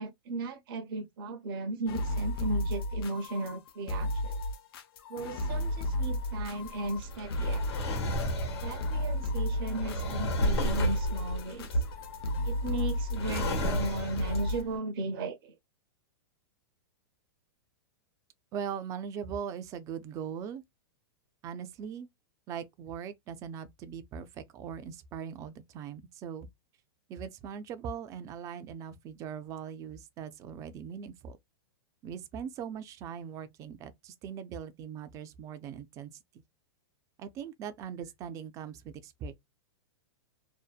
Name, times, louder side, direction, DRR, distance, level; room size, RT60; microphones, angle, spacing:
voice 1, 0.0-4.4 5.1-7.6 8.6-11.7 12.4-15.5, right 2 dB, 60° right, 0.7 m, -36 dB
sound 1, 1.9-14.6, left 1 dB, 65° left, 0.6 m, -34 dB
Drawer open or close, 5.4-14.7, equal, 90° left, 1.1 m, -33 dB
voice 2, 18.5-20.6 21.4-22.1 22.5-26.5 27.1-31.4 32.0-36.2 37.2-39.3, right 7 dB, 25° right, 0.4 m, -40 dB
2.7 x 2.1 x 2.3 m
hypercardioid pair, 145°, 13 cm